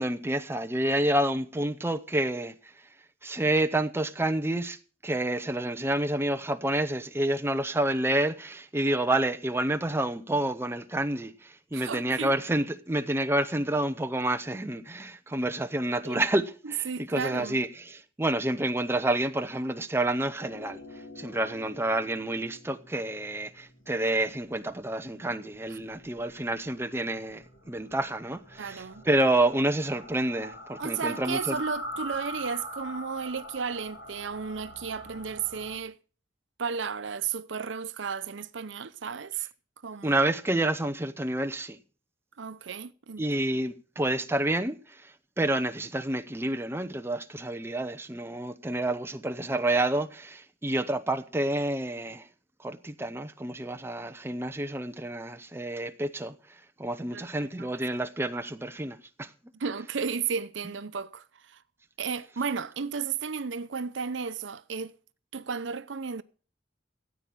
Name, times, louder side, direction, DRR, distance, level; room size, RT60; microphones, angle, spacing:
voice 1, 0.0-2.5 3.2-4.8 5.0-20.8 21.2-31.6 40.0-41.8 43.2-45.1 45.4-52.3 52.6-56.3 56.8-59.3, right 1 dB, 15° right, 0.7 m, -29 dB
voice 2, 11.7-12.4 16.0-16.2 16.6-17.6 28.6-29.0 30.8-36.0 36.6-39.5 39.8-40.2 42.4-43.3 57.1-57.7 59.5-61.6 62.0-64.9 65.3-66.2, right 6 dB, 90° right, 0.7 m, -33 dB
sound 1, 20.4-35.8, equal, 75° left, 3.3 m, -44 dB
14.0 x 8.4 x 6.1 m
head